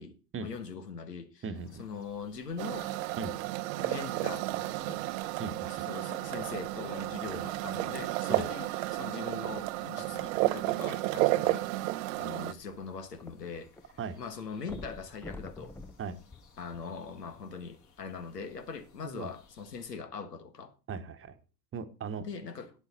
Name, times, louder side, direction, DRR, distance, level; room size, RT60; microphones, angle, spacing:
voice 1, 0.4-1.4 1.8-2.9 3.7-5.0 5.6-11.7 12.2-13.7 14.2-15.8 16.6-20.7 22.2-22.7, left 5 dB, 85° left, 1.7 m, -41 dB
voice 2, 1.4-1.8 3.2-3.3 5.4-5.8 7.2-7.5 8.3-8.5 14.0-14.2 16.0-16.1 19.0-19.3 20.9-21.3 21.7-22.2, right 5 dB, 25° right, 1.3 m, -38 dB
sound 1, 1.5-19.9, left 3 dB, 40° left, 3.1 m, -62 dB
sound 2, 2.6-12.5, right 19 dB, 55° right, 0.7 m, -32 dB
sound 3, 12.4-13.8 14.1-14.2 14.6-17.2 17.9-18.0, left 2 dB, 5° left, 0.6 m, -47 dB
12.0 x 9.1 x 4.3 m
figure-of-eight pair, 80°, 47 cm